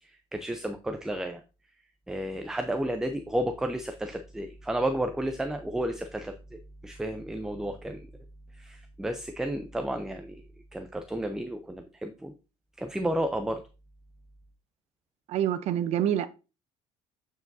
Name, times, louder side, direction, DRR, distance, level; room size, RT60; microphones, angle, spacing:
voice 1, 0.0-1.4 2.1-8.1 8.6-10.4 10.7-12.3 12.8-13.6, right 1 dB, 5° right, 0.4 m, -32 dB
voice 2, 15.3-16.3, right 10 dB, 55° right, 0.6 m, -26 dB
8.2 x 4.6 x 2.6 m
cardioid pair, 120°, 13 cm